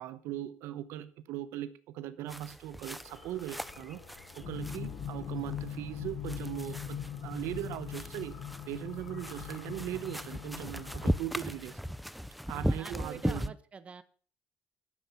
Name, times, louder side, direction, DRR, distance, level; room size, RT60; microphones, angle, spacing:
voice 1, 0.0-4.0 4.3-8.4 8.7-11.8 12.5-13.5, right 13 dB, 80° right, 1.0 m, -39 dB
sound 1, 2.3-13.5, equal, ahead, 0.5 m, -38 dB
sound 2, 3.0-11.2, left 5 dB, 70° left, 7.0 m, -55 dB
sound 3, 4.4-11.7, left 8 dB, 45° left, 1.2 m, -41 dB
voice 2, 12.5-14.0, right 5 dB, 30° right, 1.1 m, -46 dB
11.5 x 7.1 x 8.0 m
cardioid pair, 120°, 4 cm